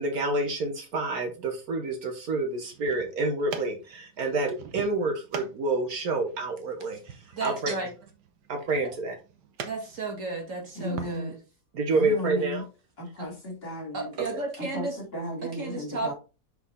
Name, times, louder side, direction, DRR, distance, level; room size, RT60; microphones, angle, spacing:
voice 1, 0.0-7.7 8.5-9.1 11.7-12.6 14.2-14.3, right 2 dB, 65° right, 1.5 m, -28 dB
sound 1, 2.6-11.2, right 6 dB, 90° right, 1.5 m, -44 dB
voice 2, 7.3-7.9 9.6-11.4 13.9-15.0 15.6-16.1, right 3 dB, 50° right, 2.3 m, -33 dB
voice 3, 10.8-11.3 11.9-12.7 13.0-14.1 14.6-16.1, equal, 40° left, 2.2 m, -35 dB
6.1 x 4.5 x 3.6 m
omnidirectional pair, 1.7 m